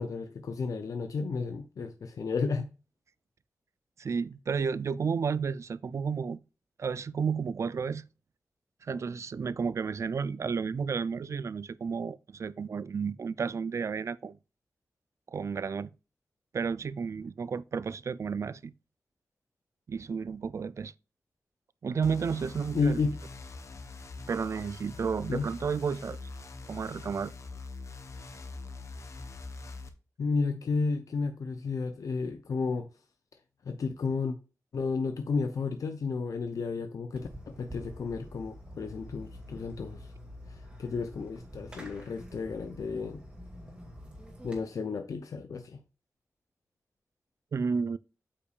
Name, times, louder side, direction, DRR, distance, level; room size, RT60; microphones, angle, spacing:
voice 1, 0.0-2.7 22.7-23.2 25.3-25.5 30.2-32.9 33.7-34.4 34.7-40.1 40.5-43.2 44.4-45.8, left 4 dB, 85° left, 0.6 m, -32 dB
voice 2, 4.0-6.4 6.8-8.0 8.8-14.4 15.3-15.9 16.5-18.7 19.9-20.9 21.8-23.0 24.3-26.2 26.7-27.3 47.5-48.0, right 5 dB, 60° right, 0.3 m, -32 dB
sound 1, 22.0-29.9, left 3 dB, 60° left, 0.9 m, -43 dB
Fireworks, 37.1-44.6, equal, 20° right, 2.3 m, -47 dB
8.2 x 5.7 x 2.4 m
wide cardioid pair, 115°, 6 cm